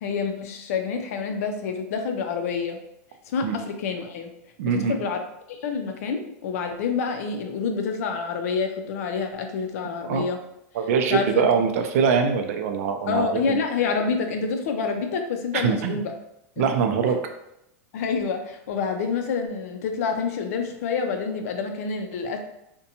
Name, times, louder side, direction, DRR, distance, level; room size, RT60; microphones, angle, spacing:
voice 1, 0.0-2.8 3.3-4.3 4.6-5.2 5.5-10.4 11.1-11.4 13.1-16.1 16.6-16.7 17.9-22.4, left 5 dB, 75° left, 5 dB, 0.4 m, -27 dB
voice 2, 4.6-5.0 10.0-10.2 10.7-13.6 15.6-16.0 16.6-17.2, right 6 dB, 70° right, 5 dB, 0.4 m, -23 dB
2.5 x 2.2 x 2.8 m, 0.81 s
supercardioid pair, 150°, 8 cm